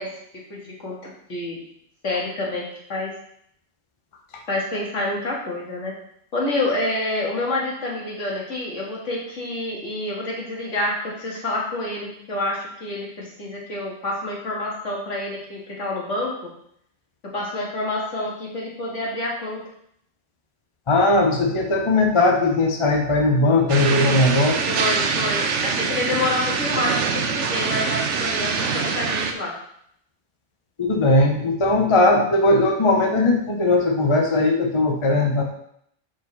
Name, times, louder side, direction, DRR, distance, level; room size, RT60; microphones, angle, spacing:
voice 1, 0.0-1.6 2.0-2.6 2.9-3.1 4.5-5.9 6.3-16.5 17.3-19.6 24.7-29.6, left 2 dB, 75° left, -3 dB, 2.1 m, -28 dB
voice 2, 20.9-24.6 30.8-35.4, left 2 dB, 30° left, 1 dB, 0.8 m, -19 dB
sound 1, 23.7-29.3, right 5 dB, 75° right, 1.0 m, -24 dB
6.8 x 5.1 x 4.1 m, 0.70 s
omnidirectional pair, 1.3 m